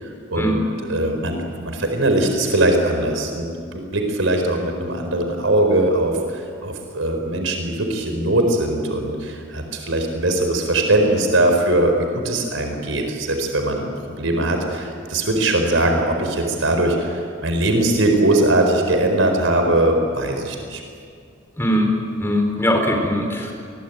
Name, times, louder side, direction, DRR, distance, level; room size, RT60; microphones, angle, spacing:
voice 1, 0.0-13.9 14.2-20.8, right 1 dB, 85° right, 4 dB, 4.6 m, -20 dB
voice 2, 21.6-21.9 22.2-23.5, equal, 10° left, 2 dB, 4.4 m, -20 dB
28.0 x 22.0 x 9.2 m, 2.2 s
head